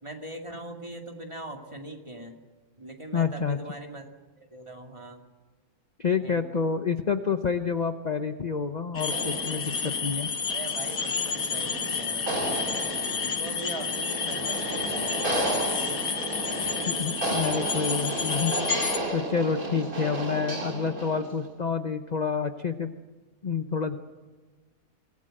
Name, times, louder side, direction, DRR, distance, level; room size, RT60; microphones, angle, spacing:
voice 1, 0.0-2.4 2.8-4.1 4.4-5.2 6.2-6.5 10.5-12.6 13.2-15.3 15.9-16.0, right 1 dB, 20° right, 2 dB, 2.3 m, -41 dB
voice 2, 3.1-3.6 6.0-10.3 16.9-18.5 19.1-22.9 23.4-24.0, left 5 dB, 35° left, 7 dB, 0.9 m, -28 dB
sound 1, 8.9-19.0, left 5 dB, 85° left, 1.9 m, -30 dB
sound 2, 9.1-21.4, right 1 dB, 80° right, 4.1 m, -33 dB
24.5 x 19.0 x 7.8 m, 1.2 s
omnidirectional pair, 1.5 m